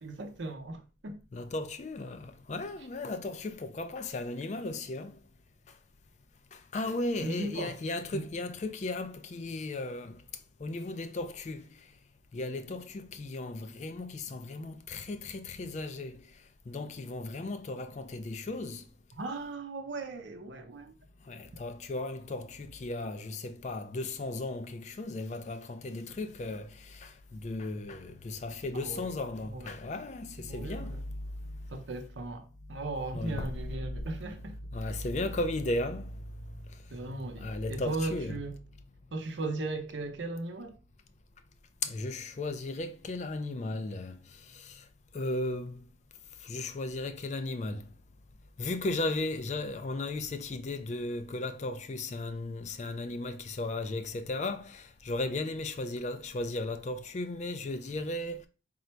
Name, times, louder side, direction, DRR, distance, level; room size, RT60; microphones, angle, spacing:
voice 1, 0.0-1.2 7.2-7.8 8.1-8.3 19.1-20.9 28.7-29.2 29.4-30.0 30.5-31.0 31.7-34.6 36.9-38.6 39.1-40.8, right 2 dB, 75° right, 0.7 m, -37 dB
voice 2, 1.3-5.1 6.7-10.1 10.6-11.7 12.3-16.2 16.7-18.8 21.3-26.7 27.0-27.1 27.4-30.9 33.1-33.5 34.7-36.1 37.4-38.4 41.8-44.1 45.1-45.8 46.5-47.8 48.6-58.4, left 2 dB, 40° left, 0.4 m, -35 dB
3.8 x 2.1 x 4.4 m
head